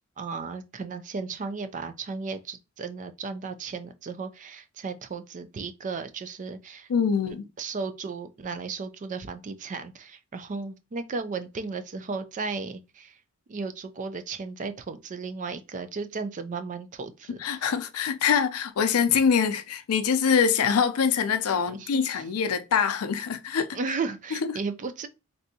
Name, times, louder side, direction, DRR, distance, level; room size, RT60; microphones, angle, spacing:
voice 1, 0.2-6.9 7.3-13.2 13.5-17.7 19.1-19.2 21.5-22.2 23.7-25.1, right 4 dB, 35° right, 0.4 m, -35 dB
voice 2, 6.9-7.4 17.4-23.7, left 6 dB, 80° left, 0.4 m, -24 dB
3.3 x 2.7 x 2.7 m
head